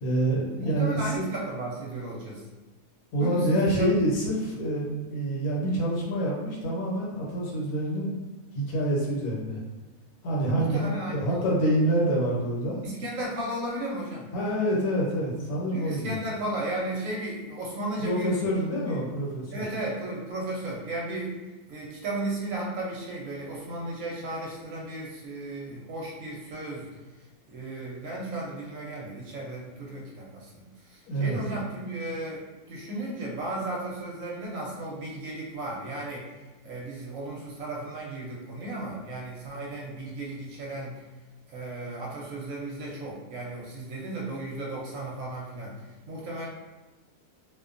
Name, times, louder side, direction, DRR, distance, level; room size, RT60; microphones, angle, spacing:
voice 1, 0.0-1.3 3.1-8.1 8.5-9.6 10.2-12.8 14.3-16.1 18.0-19.6 31.1-31.4, right 1 dB, 75° left, -4 dB, 1.3 m, -27 dB
voice 2, 0.6-2.4 3.2-3.9 10.5-11.2 12.8-14.3 15.7-18.3 18.9-19.0 19.5-21.4 21.7-26.9 27.5-36.3 36.6-41.0 41.5-45.8 46.1-46.5, right 1 dB, 65° right, -4 dB, 0.9 m, -35 dB
2.6 x 2.2 x 2.5 m, 1.2 s
omnidirectional pair, 1.7 m